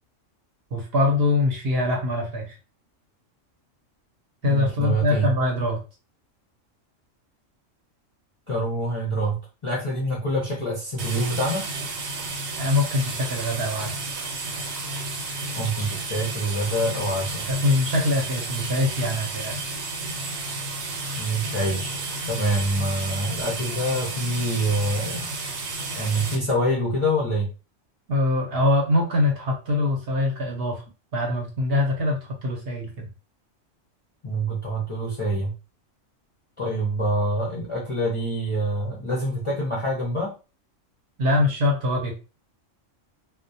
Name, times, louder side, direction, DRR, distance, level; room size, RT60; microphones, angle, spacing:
voice 1, 0.7-2.6 4.4-5.8 12.6-14.0 17.5-19.6 28.1-30.8 31.1-33.1 41.2-42.1, left 2 dB, 55° right, 0 dB, 0.8 m, -23 dB
voice 2, 4.4-5.3 8.5-11.7 15.5-17.5 21.2-25.3 25.9-27.5 34.2-35.5 36.6-40.3, right 1 dB, 40° left, -4 dB, 0.5 m, -26 dB
sound 1, 11.0-26.4, right 3 dB, 80° right, 1.0 m, -32 dB
2.3 x 2.1 x 2.6 m, 0.31 s
omnidirectional pair, 1.3 m